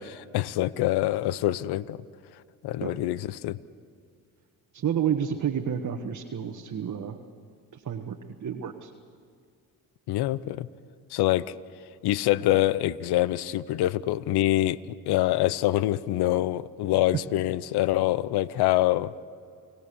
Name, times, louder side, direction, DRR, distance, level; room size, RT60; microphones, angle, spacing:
voice 1, 0.0-2.0 2.6-3.6 10.1-10.7 11.1-11.5 12.0-14.8 15.1-19.1, left 15 dB, 75° left, 19 dB, 0.7 m, -25 dB
voice 2, 4.7-7.2 7.7-8.9 17.1-17.2, right 8 dB, 50° right, 3 dB, 1.5 m, -30 dB
29.5 x 17.5 x 7.0 m, 2.2 s
supercardioid pair, 65°, 39 cm